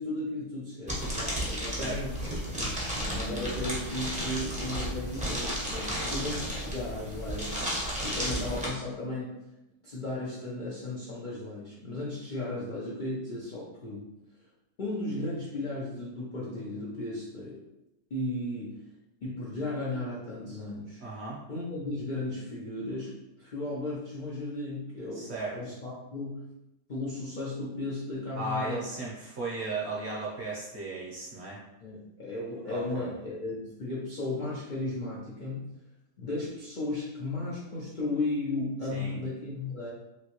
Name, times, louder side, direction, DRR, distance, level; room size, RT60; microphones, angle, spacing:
voice 1, 0.0-2.4 3.0-7.6 8.0-9.4 9.8-14.1 14.8-17.6 18.1-18.8 19.2-21.0 21.5-26.5 26.9-28.9 31.8-35.7 36.2-39.9, left 2 dB, 90° left, -7 dB, 0.4 m, -35 dB
sound 1, 0.9-8.7, equal, 10° right, 0.3 m, -33 dB
voice 2, 21.0-21.4 25.1-25.5 28.4-31.6 32.7-33.1 38.9-39.1, right 2 dB, 55° right, -5 dB, 0.8 m, -35 dB
3.1 x 2.7 x 2.9 m, 0.91 s
omnidirectional pair, 1.8 m